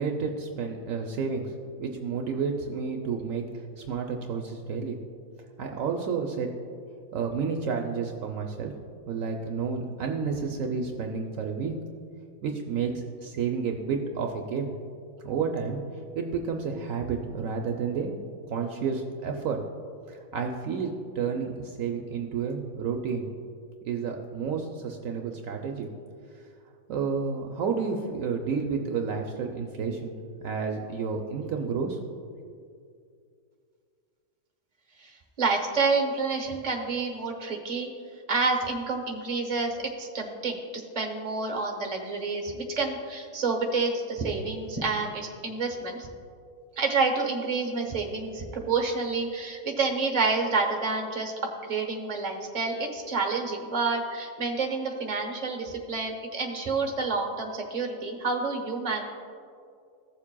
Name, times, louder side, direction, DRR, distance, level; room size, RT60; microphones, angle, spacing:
voice 1, 0.0-5.0 5.6-6.5 7.1-8.7 9.1-11.8 12.4-14.7 15.2-15.8 16.1-18.2 18.5-19.6 20.1-23.3 23.8-25.9 26.9-32.0 32.4-32.6, right 5 dB, 70° right, 2 dB, 1.0 m, -31 dB
voice 2, 35.4-37.9 38.3-46.1 46.8-59.0, right 4 dB, 30° right, 2 dB, 1.0 m, -29 dB
15.0 x 7.2 x 2.2 m, 2.3 s
omnidirectional pair, 1.6 m